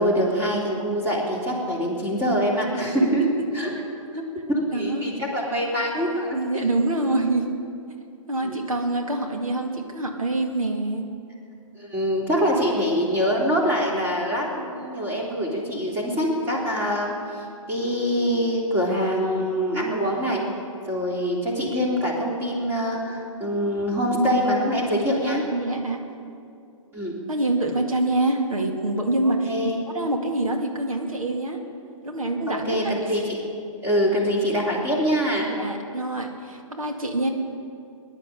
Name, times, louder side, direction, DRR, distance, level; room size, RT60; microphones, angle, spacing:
voice 1, 0.0-3.2 3.5-3.7 4.5-6.7 8.4-8.6 11.7-20.4 20.9-25.4 26.9-27.1 29.2-29.8 32.5-33.4 33.8-35.5, equal, 15° right, -2 dB, 3.3 m, -24 dB
voice 2, 3.0-3.3 4.1-4.3 4.7-5.1 6.3-7.5 8.3-11.1 25.5-26.0 27.3-31.6 32.0-33.2 35.5-37.3, right 2 dB, 90° right, 2 dB, 2.1 m, -26 dB
18.5 x 11.5 x 6.7 m, 2.4 s
hypercardioid pair, 135°, 17 cm